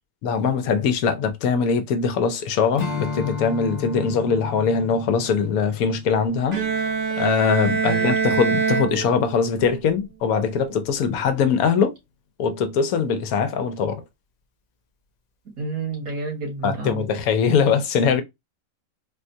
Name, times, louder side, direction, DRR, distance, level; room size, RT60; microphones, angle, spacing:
voice 1, 0.2-12.0 12.4-14.0 16.6-18.2, left 6 dB, 85° left, 1.1 m, -22 dB
Strum, 2.8-7.5, left 5 dB, 65° left, 0.4 m, -34 dB
Bowed string instrument, 6.5-9.6, right 6 dB, 45° right, 1.0 m, -24 dB
voice 2, 7.8-8.2 15.6-17.0, right 4 dB, 90° right, 2.0 m, -29 dB
4.1 x 2.3 x 2.6 m
omnidirectional pair, 1.5 m